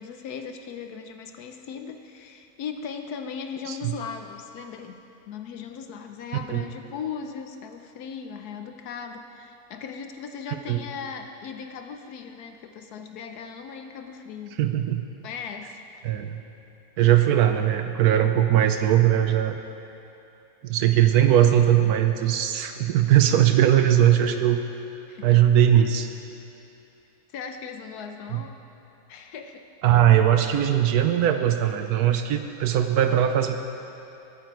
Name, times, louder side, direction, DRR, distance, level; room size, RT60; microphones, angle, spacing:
voice 1, 0.0-14.6 15.2-15.9 25.1-25.4 27.3-28.6 29.1-29.7, left 6 dB, 80° left, 6 dB, 1.2 m, -38 dB
voice 2, 14.6-15.0 16.0-16.4 17.0-19.6 20.6-24.6 25.2-26.1 28.3-28.4 29.8-33.6, right 11 dB, 80° right, 7 dB, 1.2 m, -20 dB
21.5 x 9.0 x 4.6 m, 2.9 s
omnidirectional pair, 1.6 m